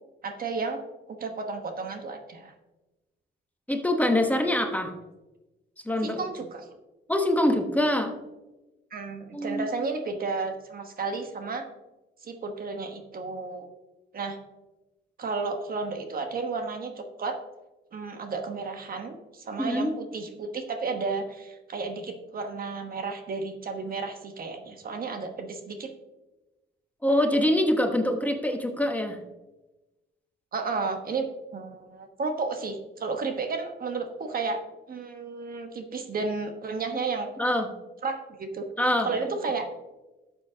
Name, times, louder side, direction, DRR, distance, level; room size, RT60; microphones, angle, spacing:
voice 1, 0.2-0.8 1.1-2.5 6.0-6.7 8.9-11.6 12.2-13.7 14.1-14.4 15.2-17.4 17.9-25.9 30.5-34.6 34.9-37.3 38.0-38.7 39.0-39.6, right 4 dB, 45° right, 5 dB, 1.2 m, -32 dB
voice 2, 3.7-4.9 5.8-6.3 7.1-8.2 9.3-9.6 19.6-19.9 27.0-29.2 37.4-37.7 38.8-39.1, left 1 dB, 5° left, 4 dB, 1.1 m, -24 dB
12.0 x 7.3 x 2.8 m, 1.1 s
cardioid pair, 90°, 20 cm